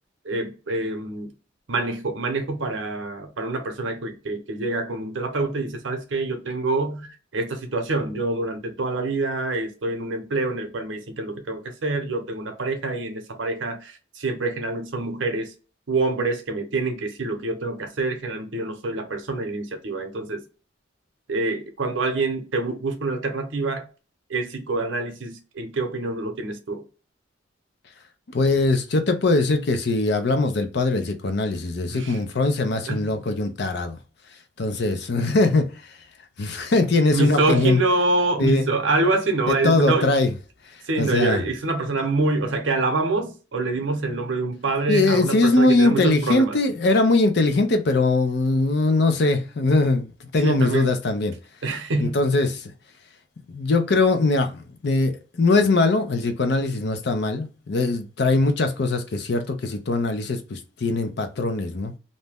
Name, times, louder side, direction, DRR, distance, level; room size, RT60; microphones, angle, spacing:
voice 1, 0.2-1.3 1.7-15.5 15.9-20.4 21.3-23.9 24.3-26.8 31.9-32.2 32.9-33.2 37.1-40.1 40.9-46.6 50.3-50.9 51.6-52.3, right 3 dB, 80° right, 0.7 m, -26 dB
voice 2, 28.3-34.0 34.6-36.0 36.4-37.8 38.4-38.6 39.6-40.3 40.7-41.4 44.9-51.3 52.0-52.7 53.5-61.9, left 2 dB, 60° left, 0.5 m, -21 dB
2.6 x 2.1 x 3.4 m
head